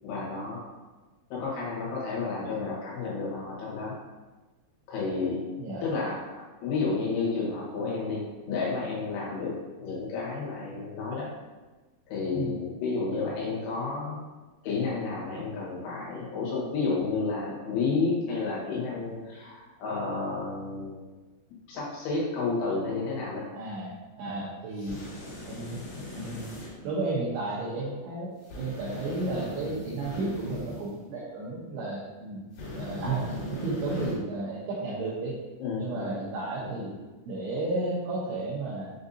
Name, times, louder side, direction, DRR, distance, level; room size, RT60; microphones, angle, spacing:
voice 1, 0.0-0.6 1.3-4.0 4.9-5.5 5.8-11.3 12.1-14.2 14.6-21.0 21.7-23.5 35.6-36.2 36.6-36.7, left 4 dB, 80° left, -5 dB, 3.5 m, -31 dB
voice 2, 23.5-25.0 25.5-25.9 26.1-26.5 26.8-32.5 32.8-35.4 35.8-36.9 37.3-38.9, right 2 dB, 80° right, -7 dB, 2.4 m, -33 dB
sound 1, 24.8-26.7 28.5-30.8 32.6-34.1, left 1 dB, 65° left, 2.8 m, -38 dB
7.3 x 2.6 x 2.5 m, 1.2 s
omnidirectional pair, 5.6 m